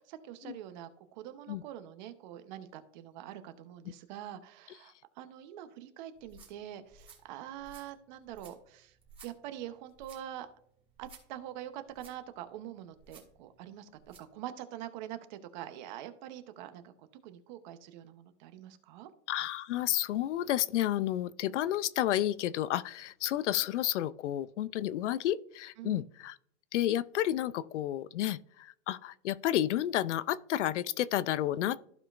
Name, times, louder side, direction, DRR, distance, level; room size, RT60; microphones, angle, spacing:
voice 1, 0.1-8.9 9.2-10.5 11.0-16.9 17.2-19.1 25.8-26.0, right 12 dB, 40° right, 0.8 m, -45 dB
sound 1, 6.1-14.3, right 3 dB, 15° right, 1.9 m, -58 dB
voice 2, 19.3-26.4 26.7-31.8, left 13 dB, 75° left, 0.5 m, -31 dB
14.5 x 5.0 x 2.5 m
supercardioid pair, 150°, 36 cm